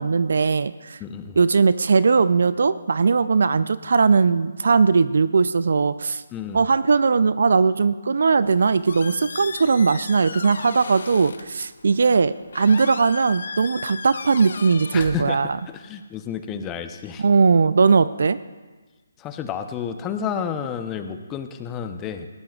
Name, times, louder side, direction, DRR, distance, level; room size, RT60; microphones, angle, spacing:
voice 1, 0.0-1.0 1.4-6.2 6.5-15.6 17.2-18.4, right 4 dB, 65° right, 15 dB, 0.5 m, -19 dB
voice 2, 1.0-1.4 6.3-6.6 14.9-15.4 15.7-17.2 19.2-22.3, left 7 dB, 20° left, 7 dB, 0.9 m, -31 dB
Squeak, 8.4-15.8, left 5 dB, 60° left, 0.8 m, -37 dB
19.5 x 17.0 x 2.5 m, 1.3 s
figure-of-eight pair, 145°, 0 cm